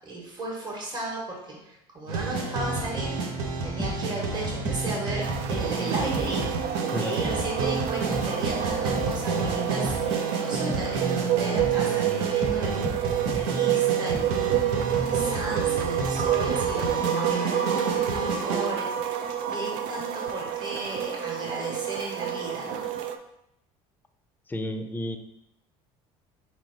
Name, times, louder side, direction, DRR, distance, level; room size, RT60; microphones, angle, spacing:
voice 1, 0.0-17.6 17.9-22.9, right 2 dB, 30° right, -3 dB, 1.4 m, -35 dB
sound 1, 2.1-18.7, right 3 dB, 90° right, 0.8 m, -30 dB
sound 2, 3.8-3.9 4.6-4.8 5.5-5.6 5.9-6.5 7.2-7.4 8.1-8.2 9.0-9.1 9.4-9.5 9.8-10.0 10.7-10.8 11.5-11.7 12.4-12.6 12.8-13.0 13.3-13.4 14.1-14.2, right 2 dB, 15° right, 1.0 m, -32 dB
sound 3, 5.2-23.2, right 10 dB, 70° right, 0.4 m, -28 dB
voice 2, 24.5-25.2, left 1 dB, 15° left, 6 dB, 0.4 m, -31 dB
4.3 x 3.1 x 4.0 m, 0.82 s
supercardioid pair, 105°, 14 cm